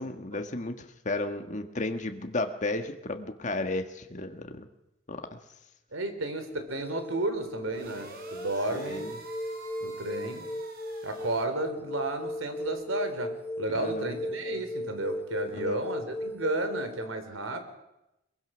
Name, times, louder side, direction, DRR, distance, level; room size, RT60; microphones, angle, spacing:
voice 1, 0.0-4.7 5.1-5.4 8.7-9.1 13.8-14.1 15.6-15.8, left 2 dB, 40° left, 6 dB, 1.4 m, -33 dB
voice 2, 5.9-9.1 9.8-10.5 11.0-17.6, right 2 dB, 90° right, 8 dB, 3.6 m, -33 dB
sound 1, 6.5-17.1, left 1 dB, 10° left, 0.8 m, -37 dB
sound 2, 7.7-11.4, right 3 dB, 50° right, 4.2 m, -47 dB
22.5 x 22.5 x 6.2 m, 0.90 s
head